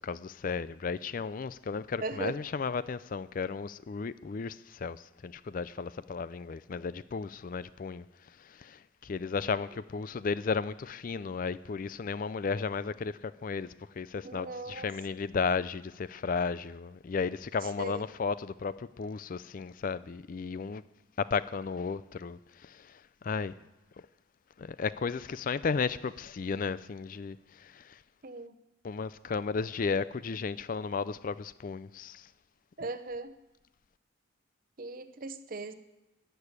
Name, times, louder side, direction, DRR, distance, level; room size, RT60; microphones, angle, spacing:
voice 1, 0.0-20.8 21.2-23.5 24.6-28.0 28.8-32.3, left 5 dB, 45° left, 0.4 m, -34 dB
voice 2, 2.0-2.3 9.7-9.8 14.2-14.9 17.8-18.0 28.2-28.6 32.8-33.3 34.8-35.7, right 3 dB, 45° right, 0.8 m, -38 dB
14.5 x 6.9 x 9.9 m
head